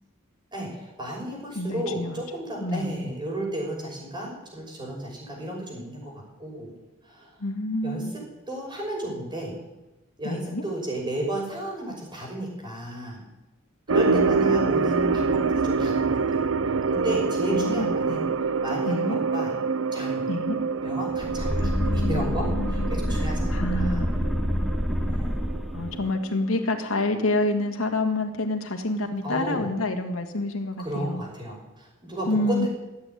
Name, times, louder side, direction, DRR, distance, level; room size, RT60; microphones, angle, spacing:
voice 1, 0.5-6.7 7.0-7.4 7.8-8.2 8.5-9.6 10.2-13.2 13.9-16.4 16.9-18.3 18.6-19.5 19.9-20.3 20.8-24.1 25.1-25.4 29.2-29.7 30.8-32.7, right 1 dB, 20° right, -2 dB, 5.9 m, -33 dB
voice 2, 1.6-2.2 2.6-3.0 7.4-8.1 10.2-10.6 14.1-14.7 17.5-18.3 18.8-19.2 20.3-20.6 21.6-23.3 23.5-24.1 25.7-31.2 32.3-32.7, left 2 dB, 85° left, 4 dB, 2.0 m, -28 dB
sound 1, 13.9-26.5 26.7-26.8 27.4-27.5, right 4 dB, 70° right, 0.6 m, -26 dB
sound 2, 21.2-26.1, equal, ahead, 0.8 m, -27 dB
15.0 x 8.3 x 9.6 m, 1.0 s
head